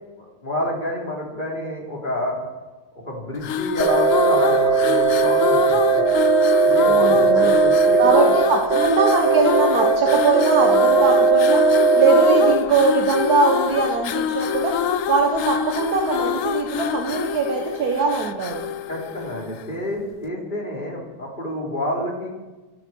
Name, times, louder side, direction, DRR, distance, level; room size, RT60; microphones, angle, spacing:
voice 1, 0.2-2.4 3.1-6.1 6.6-8.3 18.9-22.3, left 1 dB, 30° left, -2 dB, 4.4 m, -29 dB
sound 1, 3.4-19.8, left 8 dB, 60° left, 1.0 m, -26 dB
sound 2, 3.8-12.5, right 4 dB, 45° right, 1.4 m, -18 dB
voice 2, 6.8-7.6 8.0-14.8 15.1-18.7, right 4 dB, 70° right, 2 dB, 1.9 m, -21 dB
25.0 x 12.0 x 4.7 m, 1.2 s
omnidirectional pair, 1.7 m